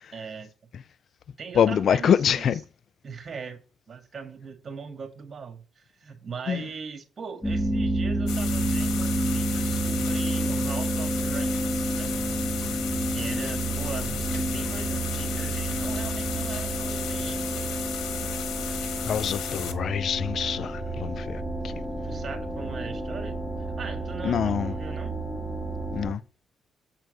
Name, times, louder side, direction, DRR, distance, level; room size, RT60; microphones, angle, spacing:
voice 1, 0.1-0.5 1.4-2.6 3.0-12.2 13.0-17.8 22.0-23.4 23.8-25.1, right 5 dB, 45° right, 2.3 m, -40 dB
voice 2, 1.6-2.6 6.5-6.6 19.1-21.7 24.2-24.7 25.9-26.2, left 8 dB, 60° left, 0.3 m, -25 dB
sound 1, 7.4-26.1, right 1 dB, 10° left, 1.8 m, -29 dB
sound 2, 8.3-19.7, left 9 dB, 80° left, 1.4 m, -35 dB
8.0 x 4.5 x 6.7 m
cardioid pair, 90°, 0 cm